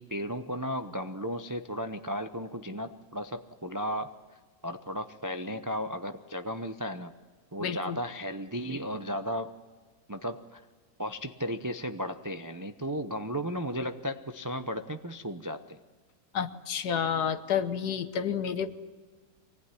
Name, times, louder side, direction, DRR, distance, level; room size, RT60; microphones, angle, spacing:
voice 1, 0.0-4.1 4.6-7.1 7.5-9.5 10.1-10.6 11.0-15.8, equal, 25° right, 7 dB, 0.4 m, -35 dB
voice 2, 7.6-8.0 16.3-18.7, left 8 dB, 70° left, 11 dB, 1.6 m, -30 dB
24.5 x 18.5 x 9.8 m, 1.4 s
omnidirectional pair, 1.8 m